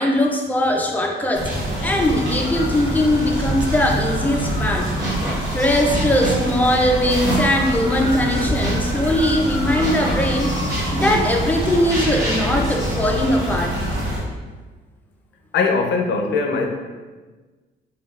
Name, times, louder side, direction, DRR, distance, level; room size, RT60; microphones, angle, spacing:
voice 1, 0.0-1.5 1.8-4.9 5.5-10.5 10.9-13.8, left 1 dB, 10° left, 1 dB, 0.4 m, -20 dB
sound 1, 1.3-14.2, equal, 80° right, 0.8 m, -25 dB
sound 2, 4.4-4.7 5.0-7.6 8.0-13.7, right 1 dB, 15° right, 1.2 m, -28 dB
voice 2, 15.5-16.7, left 4 dB, 60° left, 2 dB, 0.5 m, -20 dB
3.6 x 2.2 x 2.3 m, 1.3 s
cardioid pair, 90°, 20 cm